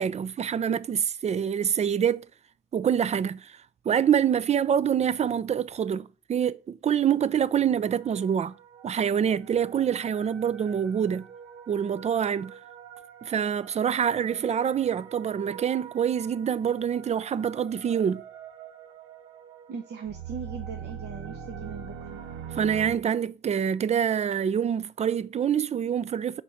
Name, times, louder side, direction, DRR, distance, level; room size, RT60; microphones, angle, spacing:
voice 1, 0.0-2.3 2.7-3.6 3.9-8.5 8.8-11.3 11.7-12.6 13.2-18.2 22.5-26.4, right 8 dB, 35° right, 0.4 m, -26 dB
sound 1, 7.6-23.0, right 8 dB, 85° right, 0.7 m, -44 dB
voice 2, 19.7-22.2, right 6 dB, 60° right, 1.0 m, -39 dB
5.4 x 4.3 x 5.1 m
cardioid pair, 90°, 20 cm